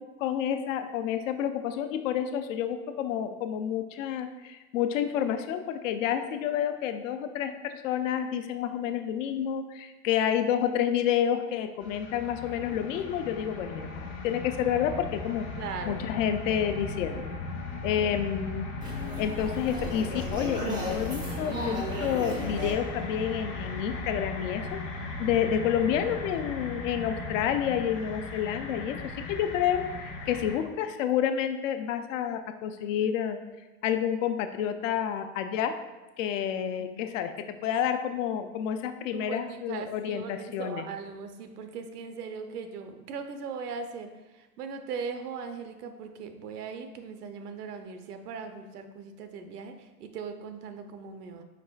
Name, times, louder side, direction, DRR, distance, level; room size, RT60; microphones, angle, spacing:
voice 1, 0.2-15.5 15.8-17.3 17.8-18.7 19.2-24.8 25.2-29.0 29.3-33.4 33.8-35.7 36.2-37.3 37.6-40.8, left 9 dB, 55° left, 8 dB, 0.5 m, -29 dB
Dark Temple, 11.8-30.6, left 3 dB, 40° left, 1.0 m, -37 dB
voice 2, 15.6-16.3 36.8-37.0 39.1-51.4, right 5 dB, 75° right, 7 dB, 0.7 m, -39 dB
sound 1, 18.8-24.0, left 1 dB, 10° right, 0.4 m, -36 dB
4.8 x 4.6 x 2.3 m, 1.2 s
hypercardioid pair, 125°, 46 cm